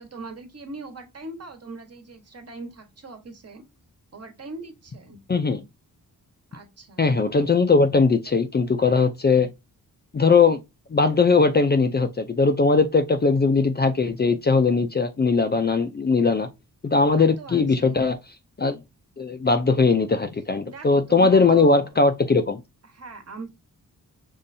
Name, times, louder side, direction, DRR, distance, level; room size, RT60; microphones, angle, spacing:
voice 1, 0.0-3.6 4.1-5.2 6.5-7.1 17.1-18.1 20.6-22.0 22.8-23.6, right 3 dB, 45° right, 1.2 m, -40 dB
voice 2, 5.3-5.6 7.0-9.5 10.1-10.6 10.9-16.5 16.8-18.2 18.6-18.8 19.2-22.6, left 4 dB, 30° left, 0.5 m, -20 dB
5.4 x 3.1 x 2.7 m
wide cardioid pair, 100°, 35 cm